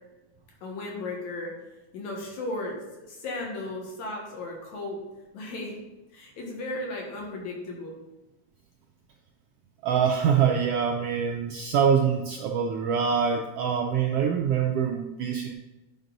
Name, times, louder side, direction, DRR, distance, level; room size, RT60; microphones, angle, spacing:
voice 1, 0.6-1.6 1.9-5.1 5.3-5.8 6.1-8.0, left 2 dB, 75° left, -1 dB, 2.9 m, -35 dB
voice 2, 9.8-15.5, right 7 dB, 80° right, 2 dB, 1.4 m, -24 dB
9.3 x 5.2 x 4.0 m, 1.0 s
omnidirectional pair, 3.3 m